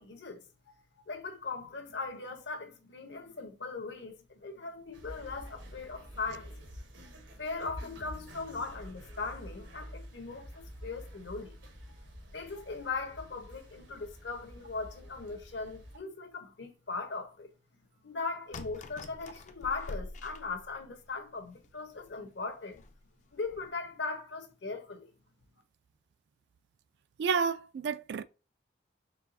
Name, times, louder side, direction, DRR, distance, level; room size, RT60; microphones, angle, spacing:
voice 1, 0.0-6.5 7.4-11.6 12.3-17.5 18.0-22.8 23.3-25.1, left 4 dB, 70° left, 0.9 m, -39 dB
sound 1, 4.9-16.0, equal, 85° right, 1.2 m, -48 dB
sound 2, 18.5-21.1 21.6-21.7 22.0-22.1 22.7-23.0 23.4-23.6, left 2 dB, 40° left, 0.4 m, -45 dB
voice 2, 27.2-28.2, right 5 dB, 65° right, 0.3 m, -30 dB
4.5 x 3.2 x 2.6 m
head